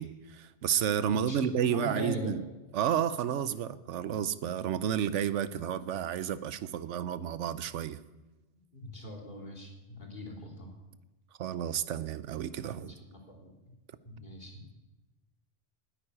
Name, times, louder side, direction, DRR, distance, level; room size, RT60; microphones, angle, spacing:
voice 1, 0.0-2.4 2.7-8.0 11.4-12.9, right 9 dB, 85° right, 1.0 m, -31 dB
voice 2, 1.1-2.3 8.7-10.7 12.8-13.5 14.0-14.6, left 1 dB, 45° left, 2.8 m, -40 dB
10.0 x 8.7 x 9.9 m
omnidirectional pair, 1.2 m